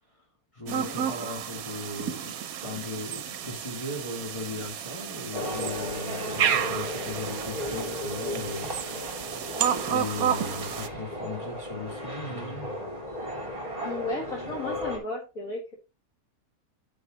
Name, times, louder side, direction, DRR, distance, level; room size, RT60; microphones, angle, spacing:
voice 1, 0.5-9.5 9.8-12.7, left 2 dB, 20° left, 0 dB, 2.2 m, -38 dB
sound 1, 0.7-10.9, right 9 dB, 70° right, 1.2 m, -31 dB
sound 2, 5.3-15.0, left 1 dB, 25° right, 3.7 m, -35 dB
voice 2, 13.8-15.7, left 2 dB, 65° left, -1 dB, 2.3 m, -34 dB
9.8 x 5.4 x 3.9 m, 0.28 s
omnidirectional pair, 1.6 m